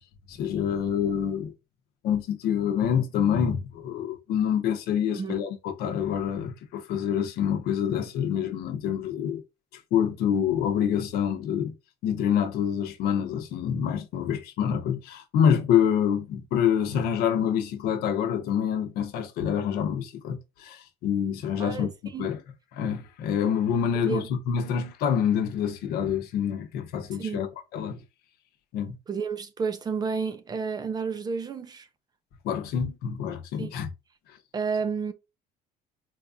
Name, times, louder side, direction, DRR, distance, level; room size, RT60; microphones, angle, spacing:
voice 1, 0.3-1.5 2.0-9.4 9.7-11.7 12.0-21.9 22.2-22.4 22.7-28.0 28.7-28.9 32.4-33.9 34.3-34.4, left 8 dB, 80° left, 0.8 m, -26 dB
voice 2, 21.6-22.3 24.1-24.3 27.2-27.4 29.1-31.9 33.6-33.7 34.5-35.1, right 5 dB, 25° right, 0.4 m, -31 dB
4.3 x 2.4 x 2.5 m
cardioid pair, 150°, 16 cm